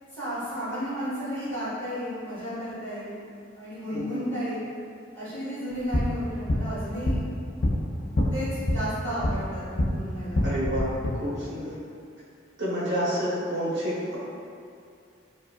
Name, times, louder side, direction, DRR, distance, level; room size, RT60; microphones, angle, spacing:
voice 1, 0.1-3.2 3.5-4.6 5.1-7.4 8.3-8.5 8.7-10.4, equal, 15° left, -14 dB, 1.3 m, -33 dB
voice 2, 3.9-4.2 10.4-10.9 11.2-11.8 12.6-14.2, equal, 60° right, -9 dB, 0.7 m, -29 dB
sound 1, 5.7-9.9 10.3-11.1, left 1 dB, 45° left, 0.4 m, -27 dB
4.4 x 2.1 x 2.2 m, 2.4 s
head